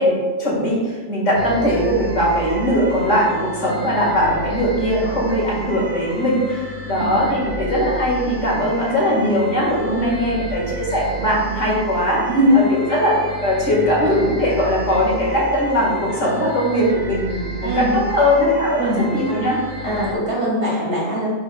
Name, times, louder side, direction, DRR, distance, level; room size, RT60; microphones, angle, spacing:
voice 1, 0.0-12.2 12.7-13.1 13.4-19.6, equal, 70° left, -4 dB, 1.9 m, -20 dB
sound 1, 1.4-20.1, right 2 dB, 35° right, 0.8 m, -32 dB
voice 2, 12.3-12.6 17.6-17.9 18.8-19.1 19.8-21.3, equal, 55° right, -6 dB, 2.4 m, -20 dB
10.0 x 4.8 x 2.2 m, 1.4 s
omnidirectional pair, 1.4 m